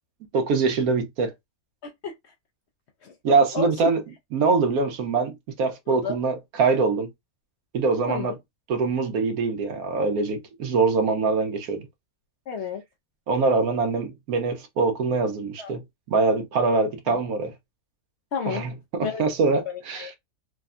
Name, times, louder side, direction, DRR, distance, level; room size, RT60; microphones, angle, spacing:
voice 1, 0.3-1.3 3.2-4.0 4.3-7.1 7.7-8.4 8.7-11.8 13.3-17.5 18.4-20.1, right 4 dB, 90° right, 1.2 m, -23 dB
voice 2, 1.8-2.1 3.0-3.1 3.5-3.7 5.9-6.2 8.1-8.4 12.5-12.8 15.6-15.7 17.1-17.2 18.3-18.6 19.0-19.2 19.7-20.2, left 7 dB, 65° left, 0.7 m, -31 dB
3.5 x 2.1 x 2.4 m
omnidirectional pair, 1.5 m